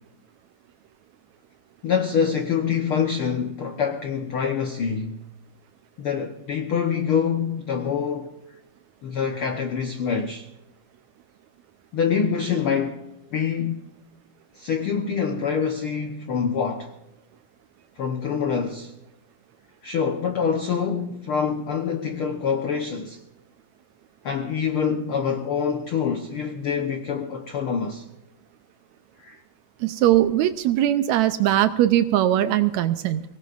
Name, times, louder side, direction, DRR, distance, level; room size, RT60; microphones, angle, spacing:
voice 1, 1.8-5.2 6.0-8.4 9.0-10.5 11.9-13.9 14.5-16.9 18.0-18.9 19.8-23.2 24.2-28.1 29.2-29.4, left 6 dB, 75° left, 1.2 m, -25 dB
voice 2, 29.8-33.2, right 12 dB, 85° right, 1.6 m, -20 dB
24.0 x 18.5 x 2.5 m
omnidirectional pair, 4.0 m